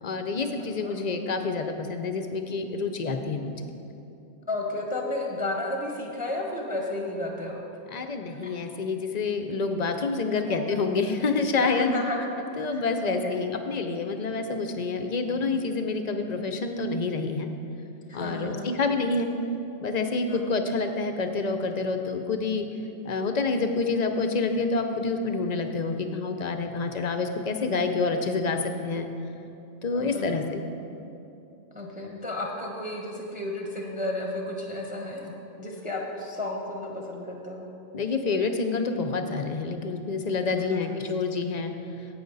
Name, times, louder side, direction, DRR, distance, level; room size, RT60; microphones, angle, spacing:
voice 1, 0.0-3.7 7.9-11.9 12.6-17.5 18.1-19.3 19.8-22.7 23.0-29.1 29.8-30.6 37.9-41.7, left 4 dB, 50° left, 6 dB, 0.5 m, -28 dB
voice 2, 0.6-1.0 4.5-7.6 8.4-8.5 10.3-10.8 11.6-13.3 18.1-18.8 20.3-20.4 29.9-30.5 31.7-37.7 40.6-41.0, left 1 dB, 5° right, 0 dB, 0.9 m, -33 dB
12.0 x 8.3 x 4.0 m, 2.8 s
omnidirectional pair, 1.3 m